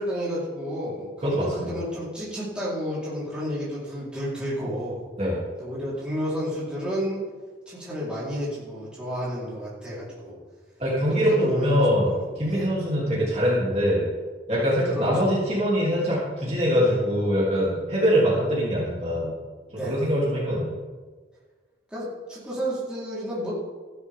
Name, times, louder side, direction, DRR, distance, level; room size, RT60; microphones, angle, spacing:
voice 1, 0.0-5.0 5.6-7.2 7.7-10.4 11.1-11.8 12.1-12.7 14.9-15.3 19.6-20.1 21.9-23.5, equal, 5° right, -9 dB, 4.5 m, -31 dB
voice 2, 1.2-1.8 5.2-5.4 10.8-12.1 12.3-14.1 14.5-19.3 19.8-20.7, equal, 35° right, -7 dB, 3.3 m, -23 dB
15.0 x 12.0 x 3.8 m, 1.4 s
head